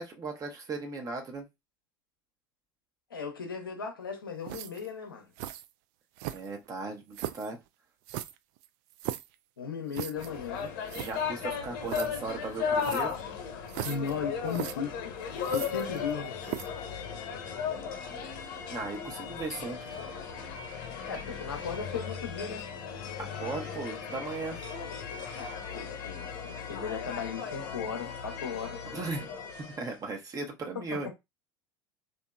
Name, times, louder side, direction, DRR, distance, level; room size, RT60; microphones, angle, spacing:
voice 1, 0.0-1.5 6.3-7.6 11.0-13.1 18.7-19.8 23.2-24.6 28.9-29.3 29.8-31.1, right 3 dB, 30° right, 0.9 m, -37 dB
voice 2, 3.1-5.3 9.6-10.7 13.8-15.2 15.5-16.3 21.1-22.7 25.3-28.8 30.7-31.2, left 6 dB, 85° left, 0.6 m, -37 dB
sound 1, 4.4-4.9 5.4-5.7 6.2-6.7 7.1-7.5 8.1-9.3 9.9-10.3 10.6-10.7 10.9-11.1 11.9-12.1 12.8-13.2 13.7-14.1 14.5-14.7 15.4-16.1 16.4-16.8, right 14 dB, 60° right, 0.3 m, -38 dB
sound 2, 10.2-30.0, left 6 dB, 60° left, 0.9 m, -36 dB
2.9 x 2.5 x 2.3 m
hypercardioid pair, 80°, 11 cm